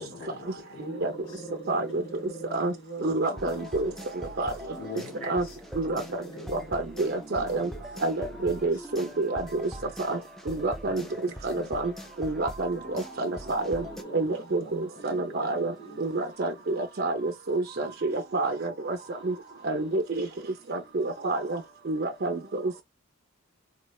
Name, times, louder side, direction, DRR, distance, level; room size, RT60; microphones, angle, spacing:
voice 1, 0.0-0.8 1.3-1.9 3.0-3.2 4.8-5.6 5.8-6.5 7.4-7.7 8.7-8.9 9.8-9.9 10.9-11.7, left 4 dB, 75° left, 1.9 m, -43 dB
voice 2, 0.8-4.9 5.9-8.1 9.2-9.6 13.2-16.0, right 2 dB, 20° left, 1.4 m, -44 dB
voice 3, 1.7-2.0 2.5-2.7 3.0-3.9 4.4-4.5 5.2-5.4 5.8-6.2 6.5-7.7 8.0-9.6 10.1-10.2 10.5-11.0 11.4-11.9 12.2-13.8 14.1-15.7 16.0-19.0 19.2-19.3 19.6-20.3 20.7-21.6 21.9-22.8, right 2 dB, 50° right, 0.6 m, -28 dB
sound 1, 3.4-14.0, left 1 dB, ahead, 0.4 m, -43 dB
3.8 x 3.2 x 2.3 m
head